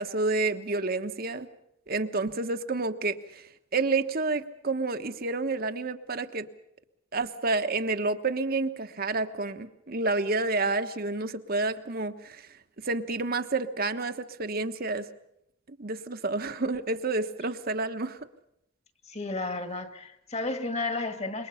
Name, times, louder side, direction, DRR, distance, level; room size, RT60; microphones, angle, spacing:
voice 1, 0.0-1.5 1.9-3.4 3.7-6.5 7.1-12.5 12.8-15.1 15.7-18.2, right 3 dB, 50° right, 1.2 m, -29 dB
voice 2, 19.1-21.5, left 3 dB, 35° left, 1.9 m, -32 dB
26.5 x 22.5 x 5.8 m
head